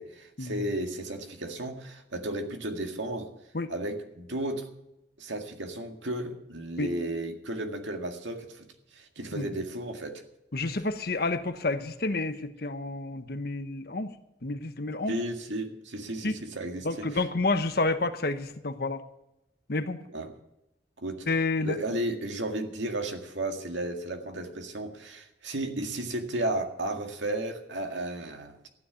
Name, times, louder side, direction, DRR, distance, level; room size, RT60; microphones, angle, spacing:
voice 1, 0.0-3.3 3.7-4.7 5.2-10.2 15.1-17.2 20.1-20.3 21.0-21.3 21.6-28.7, right 1 dB, 80° right, 4 dB, 2.0 m, -34 dB
voice 2, 10.5-14.1 14.4-15.1 16.2-16.3 16.8-19.0 19.7-20.0 21.3-21.8, left 3 dB, 50° left, 10 dB, 1.0 m, -29 dB
14.0 x 9.8 x 7.0 m, 0.89 s
head